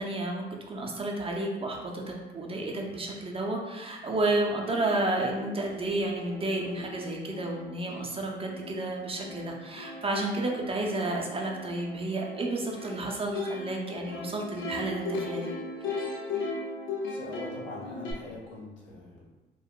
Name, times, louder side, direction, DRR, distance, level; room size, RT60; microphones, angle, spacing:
voice 1, 0.0-15.5, right 2 dB, 30° right, 0 dB, 0.5 m, -31 dB
Plucked string instrument, 4.2-4.3 4.6-18.1, left 3 dB, 85° left, 0.5 m, -38 dB
voice 2, 17.1-19.3, left 2 dB, 65° left, -5 dB, 0.9 m, -42 dB
3.6 x 2.0 x 2.3 m, 1.1 s
cardioid pair, 90°, 20 cm